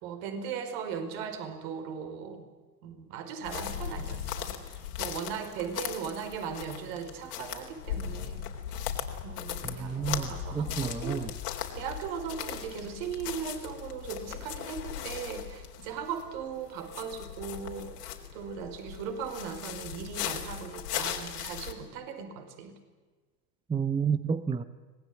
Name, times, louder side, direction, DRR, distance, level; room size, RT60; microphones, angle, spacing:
voice 1, 0.0-2.4 2.8-8.4 8.8-11.3 11.8-18.0 18.3-22.8, right 7 dB, 55° right, 5.3 m, -38 dB
sound 1, 3.4-21.7, left 10 dB, 75° left, 4.0 m, -38 dB
voice 2, 9.6-11.3 23.7-24.6, right 6 dB, 10° right, 0.9 m, -30 dB
25.5 x 19.0 x 9.9 m
hypercardioid pair, 105°, 47 cm